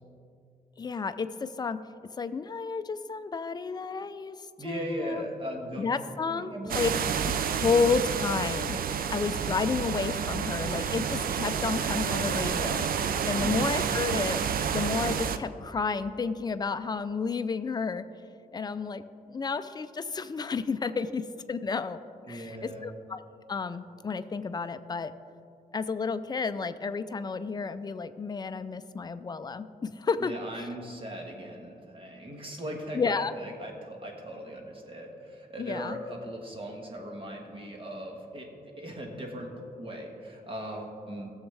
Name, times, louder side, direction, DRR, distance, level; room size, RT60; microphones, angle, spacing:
voice 1, 0.8-1.8 2.2-5.2 5.8-6.9 7.5-12.9 13.3-14.4 14.7-18.1 18.5-19.0 19.3-22.0 22.3-23.2 23.5-25.1 25.7-30.3 32.9-33.3 35.6-36.0, left 5 dB, 25° left, 11 dB, 0.4 m, -31 dB
voice 2, 4.6-5.9 6.3-6.9 13.3-13.6 22.3-22.9 30.2-38.5 38.8-39.5 39.8-41.3, right 1 dB, 35° right, 1 dB, 1.5 m, -39 dB
sound 1, 6.7-15.4, right 7 dB, 65° right, 0.5 m, -29 dB
16.5 x 7.2 x 3.4 m, 2.5 s
wide cardioid pair, 135°, 16 cm